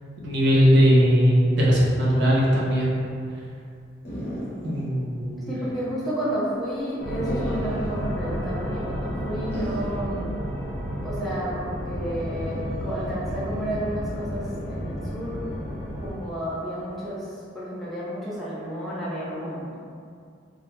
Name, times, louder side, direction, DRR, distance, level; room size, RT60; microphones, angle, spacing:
voice 1, 0.2-3.0 4.6-5.5, equal, 65° right, -5 dB, 0.6 m, -19 dB
sound 1, 4.0-4.9 5.2-5.3 7.2-8.0 9.5-10.0, equal, 50° left, 0.8 m, -35 dB
voice 2, 5.5-10.3 11.0-15.4 16.0-19.8, equal, ahead, -10 dB, 0.6 m, -31 dB
sound 2, 7.0-16.1, equal, 85° left, 0.5 m, -31 dB
2.2 x 2.1 x 3.1 m, 2.3 s
head